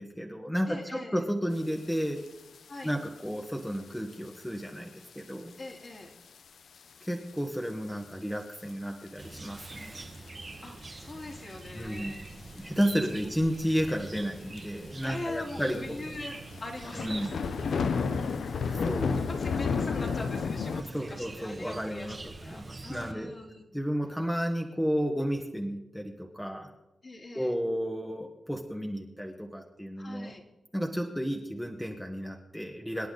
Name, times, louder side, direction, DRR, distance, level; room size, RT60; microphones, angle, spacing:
voice 1, 0.0-2.2 2.8-5.5 7.0-10.1 11.7-12.1 12.5-15.9 16.9-17.4 18.6-19.1 20.9-23.3 23.7-26.7 27.3-30.3 30.7-33.1, equal, 5° left, 2 dB, 1.4 m, -32 dB
voice 2, 0.7-1.2 2.7-2.9 5.6-6.1 10.6-12.7 15.0-17.3 19.1-23.6 27.0-27.5 30.0-30.4, left 2 dB, 40° left, 1 dB, 2.8 m, -42 dB
sound 1, 2.2-2.3 2.5-2.9 3.6-3.8 4.4-4.5 5.1-5.2 5.5-5.6 5.8-5.9 7.0-7.3 7.7-7.8 8.7-8.8 9.4-9.8 10.2-10.3 10.8-11.5 12.6-12.9 13.2-13.3 13.5-13.6 13.8-13.9 14.6-14.7 15.0-15.1 15.7-20.8, left 5 dB, 75° left, 0.7 m, -31 dB
Chirp tweet, 9.2-23.1, right 3 dB, 30° right, 1.5 m, -45 dB
25.0 x 10.5 x 3.9 m, 0.98 s
wide cardioid pair, 115°, 0 cm